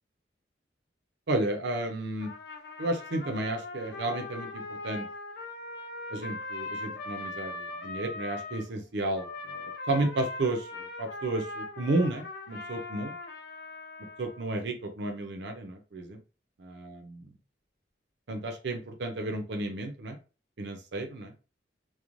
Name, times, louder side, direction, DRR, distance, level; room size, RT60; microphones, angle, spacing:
voice 1, 1.3-2.3 2.8-5.1 6.1-9.5 9.9-13.1 14.2-16.2 16.6-17.3 18.3-20.2 20.6-21.3, right 2 dB, 65° right, 4 dB, 0.5 m, -32 dB
Trumpet, 2.2-8.7 9.1-14.5, left 3 dB, 60° left, 0.6 m, -40 dB
3.0 x 2.1 x 2.5 m, 0.33 s
head